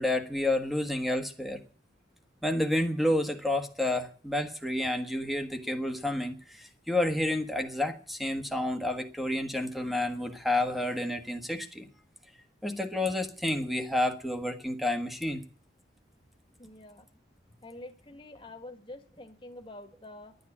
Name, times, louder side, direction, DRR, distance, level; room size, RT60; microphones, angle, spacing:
voice 1, 0.0-1.6 2.4-11.9 12.6-15.4, left 1 dB, ahead, 1.4 m, -30 dB
voice 2, 16.5-17.1 17.6-20.4, left 2 dB, 25° left, 1.6 m, -47 dB
12.0 x 9.5 x 9.7 m
head